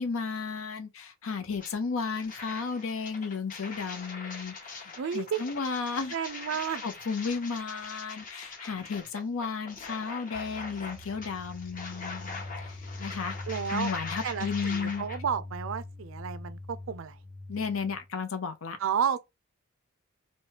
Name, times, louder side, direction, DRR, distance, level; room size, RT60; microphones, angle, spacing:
voice 1, 0.0-6.1 6.8-13.3 13.7-15.0 17.5-18.8, left 5 dB, 75° left, 0.7 m, -34 dB
sound 1, 1.6-1.7 2.1-15.2, left 4 dB, 40° left, 0.9 m, -42 dB
voice 2, 5.0-5.4 6.1-6.8 13.5-13.9 14.2-17.2 18.8-19.2, right 7 dB, 65° right, 0.4 m, -31 dB
sound 2, 10.3-18.1, left 2 dB, 10° left, 0.6 m, -43 dB
3.1 x 2.2 x 2.8 m
head